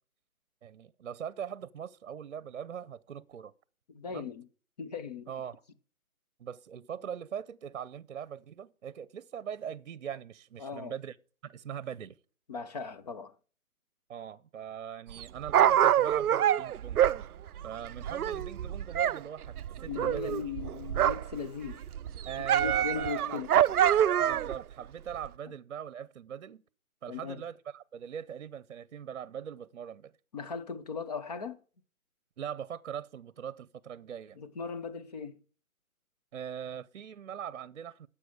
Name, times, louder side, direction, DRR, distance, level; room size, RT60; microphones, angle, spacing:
voice 1, 0.6-3.5 4.1-4.3 5.3-5.6 6.4-11.2 11.4-12.2 14.1-17.0 17.6-20.4 22.2-23.4 24.2-26.6 27.0-30.1 32.4-34.4 36.3-38.1, right 8 dB, 55° right, 0.8 m, -41 dB
voice 2, 3.9-4.5 4.8-5.3 10.6-10.9 12.5-13.4 19.9-21.8 22.6-23.6 27.1-27.4 30.3-31.6 34.4-35.4, left 6 dB, 30° left, 0.7 m, -38 dB
Dog, 15.1-19.2 19.4-21.4 21.7-24.6 25.2-25.3, right 10 dB, 85° right, 0.5 m, -26 dB
12.5 x 7.7 x 4.9 m
figure-of-eight pair, 150°, 43 cm